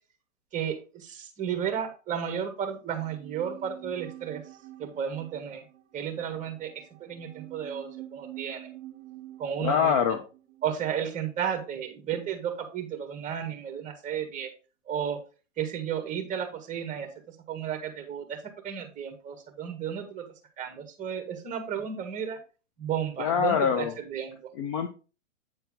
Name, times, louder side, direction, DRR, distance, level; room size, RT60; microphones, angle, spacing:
voice 1, 0.5-4.4 4.8-5.6 5.9-6.7 7.0-8.7 9.4-10.0 10.6-14.5 14.9-15.2 15.6-18.4 18.6-20.2 20.6-22.4 22.8-24.4, right 8 dB, 20° right, 6 dB, 1.7 m, -33 dB
sound 1, 2.9-12.3 12.5-12.6, right 15 dB, 55° right, 1.0 m, -48 dB
voice 2, 9.6-10.2 23.2-23.9 24.6-24.9, left 7 dB, 25° left, 9 dB, 0.4 m, -24 dB
8.8 x 4.4 x 3.7 m, 0.34 s
hypercardioid pair, 130°, 38 cm